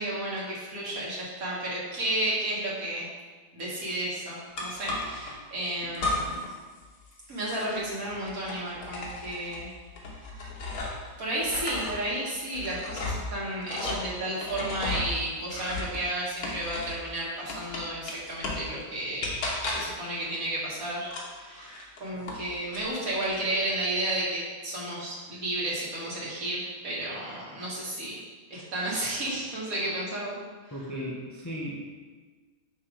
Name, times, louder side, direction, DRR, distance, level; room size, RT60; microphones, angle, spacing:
voice 1, 0.0-3.1 3.5-6.5 7.3-9.7 11.2-19.3 19.6-28.1 28.5-30.4 30.7-30.8, right 1 dB, 70° right, -6 dB, 2.0 m, -32 dB
sound 1, 4.6-5.3 5.9-6.5 6.8-11.1 11.4-17.1 17.5-18.7 19.2-20.0 21.0-22.4 22.7-23.3, left 2 dB, 85° left, 1.5 m, -35 dB
voice 2, 30.7-31.8, equal, 30° left, -5 dB, 0.3 m, -36 dB
7.2 x 2.9 x 5.0 m, 1.4 s
omnidirectional pair, 1.6 m